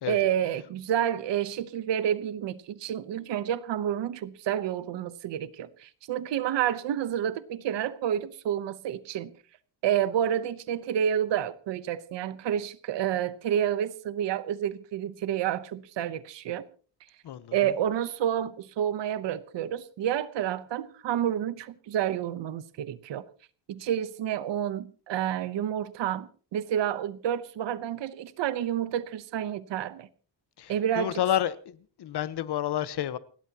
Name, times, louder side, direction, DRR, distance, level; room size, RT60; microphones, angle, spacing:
voice 1, 0.1-9.3 9.8-16.6 17.5-23.3 23.7-30.1 30.7-31.2, right 10 dB, 75° right, 1.0 m, -29 dB
voice 2, 17.2-17.7 30.6-33.2, left 11 dB, 65° left, 1.1 m, -30 dB
29.0 x 12.0 x 2.9 m
wide cardioid pair, 170°, 44 cm